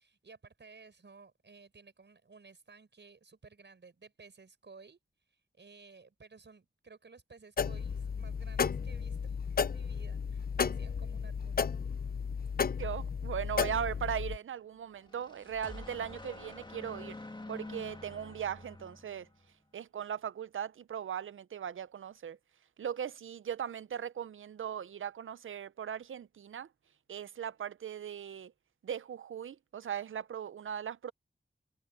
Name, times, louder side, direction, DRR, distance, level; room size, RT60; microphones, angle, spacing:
voice 1, 0.0-5.0 5.3-11.6, right 4 dB, 65° right, 6.2 m, -56 dB
sound 1, 7.6-14.4, left 6 dB, 50° left, 0.5 m, -34 dB
voice 2, 12.8-17.2 17.5-19.3 19.7-22.4 22.8-26.7 27.1-28.5 28.8-31.1, right 8 dB, 85° right, 0.5 m, -38 dB
sound 2, 14.9-19.5, left 2 dB, 25° left, 2.3 m, -47 dB
wide cardioid pair, 80°, 20 cm